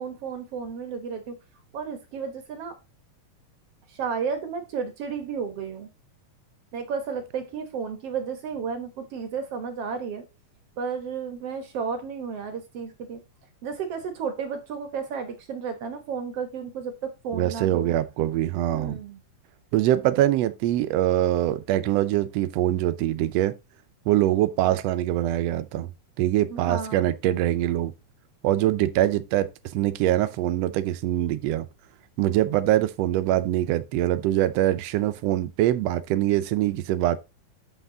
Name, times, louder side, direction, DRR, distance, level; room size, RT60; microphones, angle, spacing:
voice 1, 0.0-1.4 1.7-2.7 3.9-5.9 6.7-10.2 10.8-13.2 13.6-17.9 18.7-19.2 26.5-27.1, right 6 dB, 60° right, 1.9 m, -32 dB
voice 2, 17.3-19.0 19.7-23.5 24.1-25.9 26.2-27.9 28.4-31.7 32.2-37.2, right 13 dB, 80° right, 1.5 m, -23 dB
8.1 x 5.8 x 3.8 m
omnidirectional pair, 3.7 m